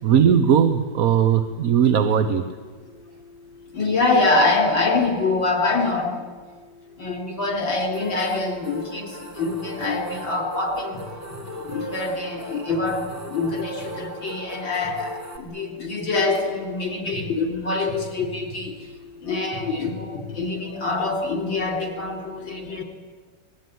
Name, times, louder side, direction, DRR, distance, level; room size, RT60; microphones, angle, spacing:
voice 1, 0.0-2.4, right 8 dB, 55° right, 9 dB, 1.3 m, -18 dB
voice 2, 3.7-6.1 7.0-11.0 11.5-18.7 19.2-22.8, left 3 dB, 80° left, 3 dB, 4.5 m, -25 dB
sound 1, 7.7-7.8 8.1-8.2 9.1-10.2 10.9-11.9 12.7-14.0 14.8-15.1 15.8-16.1 16.3-16.7 17.1-17.4 17.9-18.7 19.5-20.4, left 2 dB, 35° left, 7.2 m, -40 dB
sound 2, 7.9-15.4, right 1 dB, 10° right, 2.4 m, -37 dB
25.0 x 20.5 x 9.5 m, 1.4 s
omnidirectional pair, 2.1 m